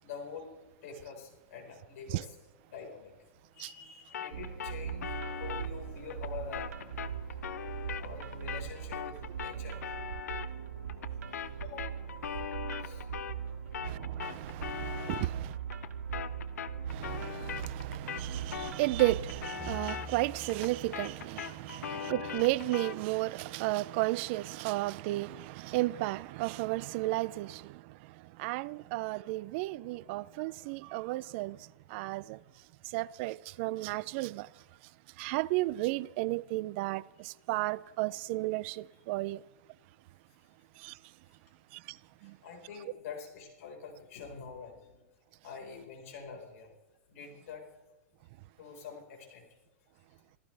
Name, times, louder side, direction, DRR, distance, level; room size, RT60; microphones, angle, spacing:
voice 1, 0.0-2.4 2.7-3.1 3.5-6.7 8.0-9.8 11.3-12.0 12.7-13.1 13.3-13.5 41.2-41.3 42.2-45.1 45.4-46.7 47.1-47.7 48.6-49.6 50.0-50.2, left 5 dB, 65° left, 4.6 m, -46 dB
sound 1, 4.1-13.5 13.7-23.0, left 9 dB, 85° left, 0.7 m, -41 dB
sound 2, 4.3-19.8, right 8 dB, 85° right, 1.8 m, -40 dB
voice 2, 13.8-15.6 16.9-27.8 28.4-31.6 31.9-32.4 32.9-34.5 35.2-39.4 40.8-40.9 41.7-42.0 42.2-42.3, right 19 dB, 50° right, 0.5 m, -33 dB
sound 3, 19.6-22.3, equal, 15° left, 3.7 m, -48 dB
26.5 x 15.0 x 3.4 m
hypercardioid pair, 130°, 8 cm